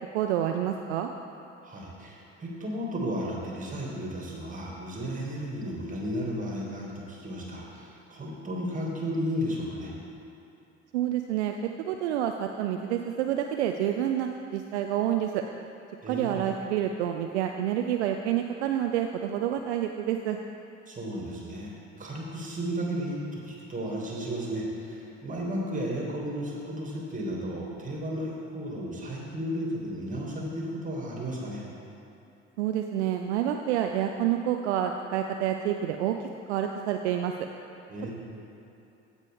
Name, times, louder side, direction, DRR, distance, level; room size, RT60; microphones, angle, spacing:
voice 1, 0.1-1.1 10.9-15.4 16.1-20.4 32.6-36.2 36.5-37.3, right 10 dB, 65° right, 4 dB, 0.5 m, -28 dB
voice 2, 1.6-9.9 16.0-16.4 20.9-31.6 37.9-38.1, equal, 20° right, -2 dB, 2.2 m, -34 dB
15.5 x 5.3 x 3.5 m, 2.9 s
figure-of-eight pair, 60°, 37 cm